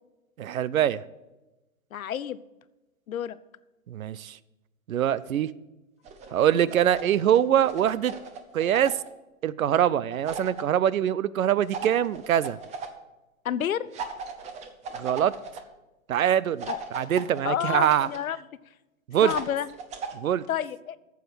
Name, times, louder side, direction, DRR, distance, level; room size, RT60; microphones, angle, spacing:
voice 1, 0.4-1.0 3.9-4.4 4.9-5.5 6.3-8.1 8.5-9.0 9.4-12.6 14.9-15.3 16.1-18.1 19.1-19.3 20.1-20.4, right 10 dB, 85° right, 19 dB, 0.6 m, -23 dB
voice 2, 1.9-2.4 3.1-3.4 13.4-13.9 16.7-16.8 17.4-18.4 19.2-19.7 20.5-21.0, left 10 dB, 85° left, 17 dB, 0.7 m, -29 dB
sound 1, 6.0-7.1 7.3-9.1 10.3-10.6 11.7-12.9 13.9-15.6 16.6-18.2 19.3-20.2, right 5 dB, 15° right, 0.8 m, -37 dB
9.2 x 7.2 x 6.1 m, 1.0 s
hypercardioid pair, 130°, 41 cm